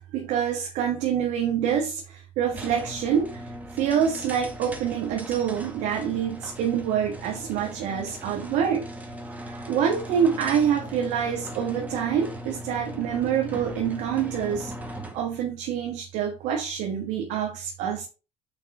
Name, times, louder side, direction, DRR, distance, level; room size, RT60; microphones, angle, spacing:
voice 1, 0.0-8.8 9.7-14.7 15.1-18.1, right 8 dB, 70° right, 1 dB, 1.6 m, -26 dB
sound 1, 2.5-15.3, equal, 10° right, 1.8 m, -39 dB
9.0 x 4.2 x 4.3 m, 0.33 s
hypercardioid pair, 65°, 14 cm